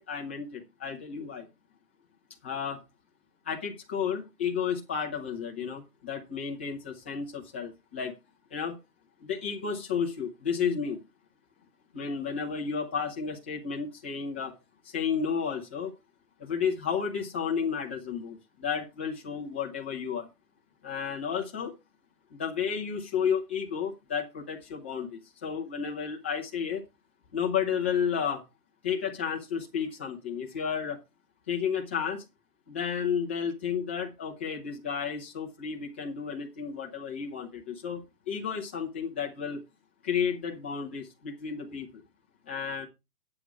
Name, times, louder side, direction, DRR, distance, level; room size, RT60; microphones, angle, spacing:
voice 1, 0.0-1.5 2.4-2.8 3.4-8.1 8.5-8.8 9.2-11.0 11.9-14.5 14.8-15.9 16.4-20.3 20.8-21.8 22.3-26.8 27.3-28.4 28.8-31.0 31.5-32.2 32.7-39.6 40.0-41.9 42.5-42.9, left 7 dB, 10° left, 0.6 m, -32 dB
9.6 x 7.6 x 4.7 m
hypercardioid pair, 160°, 48 cm